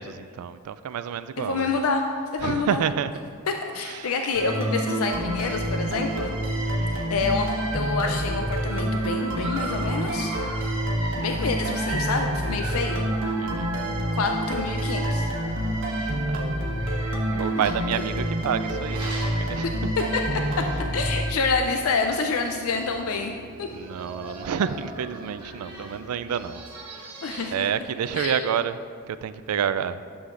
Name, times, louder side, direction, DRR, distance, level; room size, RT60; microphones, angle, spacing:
voice 1, 0.0-1.8 2.4-3.1 3.8-4.1 6.8-7.1 13.4-13.7 15.7-16.5 17.3-19.7 23.7-27.2 27.5-28.8 29.1-30.0, right 8 dB, 90° right, 13 dB, 0.3 m, -29 dB
voice 2, 1.4-2.0 2.3-2.8 3.5-6.3 6.6-10.3 11.2-13.1 14.1-15.3 17.6-17.7 19.6-19.7 20.1-20.2 20.9-23.3 23.6-23.7 27.2-27.6 28.1-28.5, left 4 dB, 70° left, 4 dB, 0.5 m, -27 dB
sound 1, 4.3-21.9, right 1 dB, 60° right, 1.2 m, -27 dB
Dog, 9.3-15.9 16.7-20.3 20.7-20.9 21.2-21.3 22.1-22.2 22.4-23.0 23.6-27.7, right 2 dB, 20° right, 1.5 m, -39 dB
sound 2, 19.6-26.4, right 2 dB, 90° left, 1.0 m, -45 dB
11.5 x 7.1 x 2.5 m, 2.2 s
head